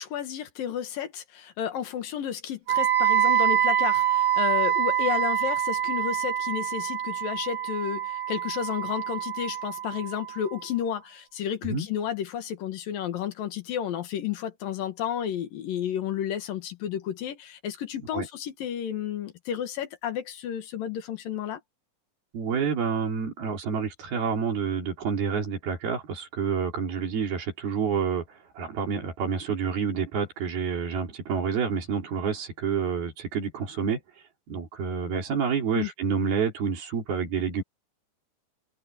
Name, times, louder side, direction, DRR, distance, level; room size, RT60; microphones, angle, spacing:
voice 1, 0.0-21.6 35.7-35.9, left 9 dB, 70° left, 3.3 m, -32 dB
Wind instrument woodwind instrument, 2.7-10.6, right 10 dB, 45° right, 7.1 m, -26 dB
voice 2, 22.3-34.0 34.5-37.6, right 6 dB, 90° right, 6.0 m, -28 dB
omnidirectional pair, 4.2 m